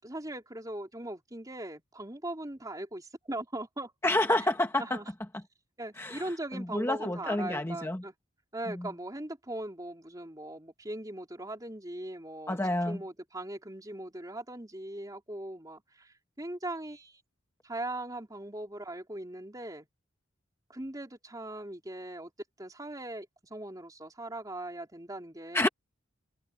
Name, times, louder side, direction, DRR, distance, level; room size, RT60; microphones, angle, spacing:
voice 1, 0.0-3.9 4.8-5.1 5.8-8.1 8.5-17.2 17.6-19.9 20.7-22.3 22.6-25.7, right 1 dB, 20° right, 3.9 m, -40 dB
voice 2, 4.0-5.0 6.0-6.2 6.5-8.0 8.8-8.9 12.5-13.0 25.5-25.7, left 1 dB, 15° left, 1.2 m, -28 dB
head